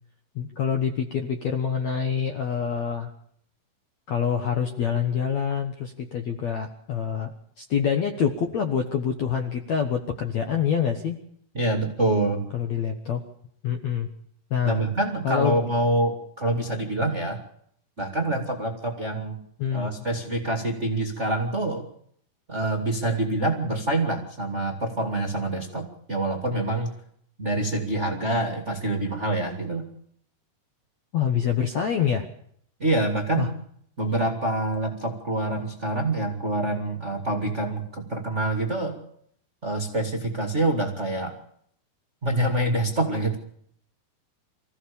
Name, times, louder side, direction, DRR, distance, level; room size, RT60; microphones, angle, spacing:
voice 1, 0.4-3.1 4.1-7.3 7.6-11.2 12.5-13.2 13.6-14.1 14.5-14.8 15.2-15.6 19.6-19.9 31.1-32.3 33.4-33.5, left 7 dB, 60° left, 5 dB, 1.9 m, -26 dB
voice 2, 11.5-12.4 14.6-17.4 18.0-19.4 19.7-21.8 22.5-26.9 27.4-29.9 32.8-33.6 34.0-39.0 39.6-41.4 42.2-43.4, right 2 dB, 25° right, 2 dB, 1.6 m, -26 dB
25.5 x 15.5 x 7.0 m, 0.66 s
omnidirectional pair, 4.7 m